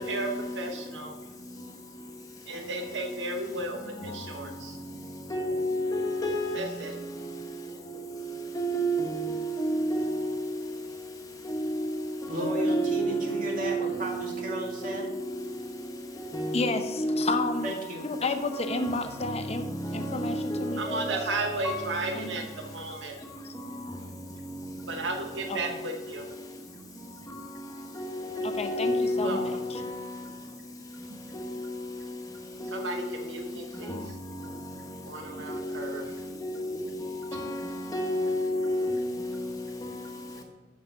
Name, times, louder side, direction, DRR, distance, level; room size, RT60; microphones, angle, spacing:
voice 1, 0.0-1.7 2.0-2.1 2.4-5.3 6.5-7.0 20.8-23.3 23.6-24.2 24.8-26.7 29.0-29.6 30.2-30.3 31.1-31.2 32.6-34.2 35.0-36.1 40.3-40.4, right 2 dB, 75° right, 1.0 m, -35 dB
voice 2, 5.3-6.9 8.6-9.5 9.9-10.3 12.6-13.9 16.3-16.7 17.0-17.3 20.5-21.8 28.0-28.1 28.4-29.6 35.5-35.6 36.4-36.9 37.3-37.5 37.9-39.3, equal, 20° left, 1.3 m, -29 dB
voice 3, 12.3-15.1 17.6-18.1, equal, 45° right, 2.0 m, -34 dB
voice 4, 16.5-17.7 18.0-21.1 22.1-22.3 25.5-25.8 28.4-29.8, left 3 dB, 35° left, 0.7 m, -32 dB
7.3 x 7.1 x 5.6 m
head